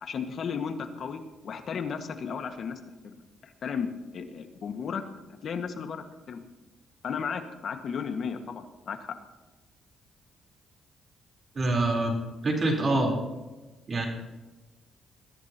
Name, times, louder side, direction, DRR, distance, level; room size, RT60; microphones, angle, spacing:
voice 1, 0.0-3.1 3.4-5.0 5.4-6.4 7.0-9.2, left 6 dB, 60° left, 6 dB, 1.8 m, -34 dB
voice 2, 11.5-12.2 12.4-13.1 13.9-14.1, right 2 dB, 40° right, 1 dB, 4.0 m, -25 dB
21.0 x 14.5 x 3.0 m, 1.1 s
cardioid pair, 90°, 0 cm